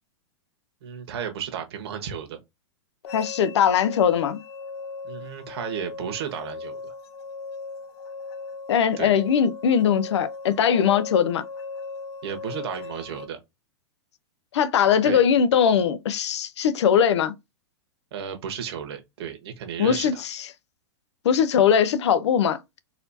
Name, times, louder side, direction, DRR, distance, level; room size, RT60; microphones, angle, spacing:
voice 1, 0.8-2.4 5.0-7.0 9.0-9.1 12.2-13.4 15.0-15.2 18.1-20.2, right 8 dB, 60° right, 1.3 m, -33 dB
sound 1, 3.0-13.3, left 4 dB, 65° left, 1.0 m, -38 dB
voice 2, 3.1-4.4 8.7-11.4 14.5-17.3 19.8-20.5 21.2-22.6, left 8 dB, 80° left, 0.6 m, -20 dB
4.2 x 2.7 x 2.6 m
supercardioid pair, 160°, 14 cm